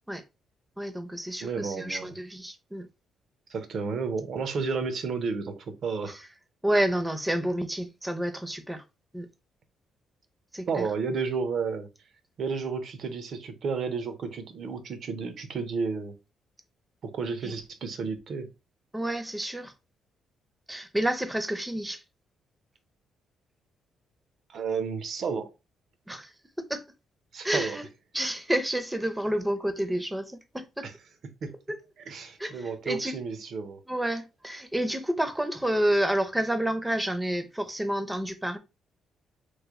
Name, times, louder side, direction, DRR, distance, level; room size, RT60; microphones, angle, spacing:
voice 1, 0.8-2.9 6.6-8.8 9.1-9.3 10.5-10.9 17.4-17.5 18.9-19.7 20.7-22.0 26.1-26.3 26.6-26.8 27.4-27.8 28.1-30.9 31.7-31.8 32.4-33.2 33.9-38.6, right 1 dB, 10° right, 0.6 m, -29 dB
voice 2, 1.4-2.1 3.5-6.2 10.7-11.9 12.4-16.2 17.1-18.5 24.5-25.5 27.3-27.8 30.8-30.9 31.4-31.5 32.1-33.8, right 5 dB, 60° right, 0.7 m, -32 dB
3.2 x 2.1 x 3.6 m
cardioid pair, 90°, 0 cm